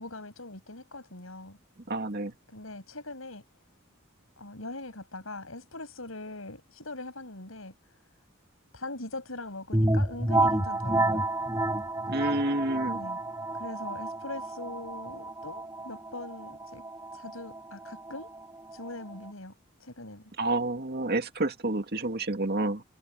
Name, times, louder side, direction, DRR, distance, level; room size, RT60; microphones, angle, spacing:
voice 1, 0.0-1.6 2.5-3.5 4.4-8.0 8.7-11.3 12.9-13.2 13.5-16.8 17.1-18.3 18.7-19.5 19.8-20.3, left 2 dB, 80° left, 7.8 m, -41 dB
voice 2, 1.9-2.3 12.1-13.0 20.4-22.8, right 2 dB, 50° right, 2.2 m, -29 dB
sound 1, 9.7-19.3, right 2 dB, 15° right, 5.6 m, -30 dB
head